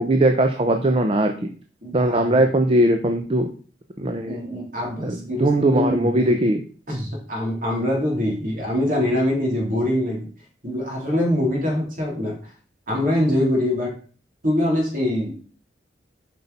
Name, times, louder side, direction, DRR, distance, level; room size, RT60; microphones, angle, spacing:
voice 1, 0.0-1.5 1.9-3.5 4.0-4.4 5.0-6.6, right 1 dB, 30° right, 5 dB, 0.6 m, -20 dB
voice 2, 1.8-2.5 4.2-6.4 6.9-10.3 10.6-12.4 12.9-13.9 14.4-15.4, left 1 dB, 50° right, -2 dB, 3.4 m, -24 dB
7.8 x 5.6 x 4.2 m, 0.41 s
head